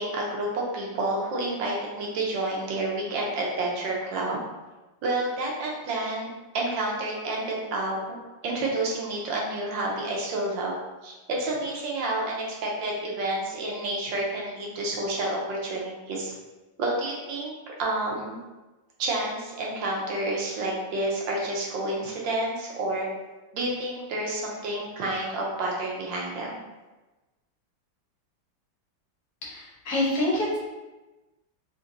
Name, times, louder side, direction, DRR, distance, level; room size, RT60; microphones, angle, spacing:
voice 1, 0.0-4.4 5.0-6.3 6.5-8.2 8.4-10.8 11.0-16.3 16.8-18.4 19.0-23.1 23.5-26.6, right 2 dB, 80° right, -2 dB, 1.5 m, -29 dB
voice 2, 29.4-30.6, left 1 dB, 65° left, -4 dB, 1.3 m, -26 dB
4.0 x 2.9 x 2.6 m, 1.1 s
omnidirectional pair, 2.0 m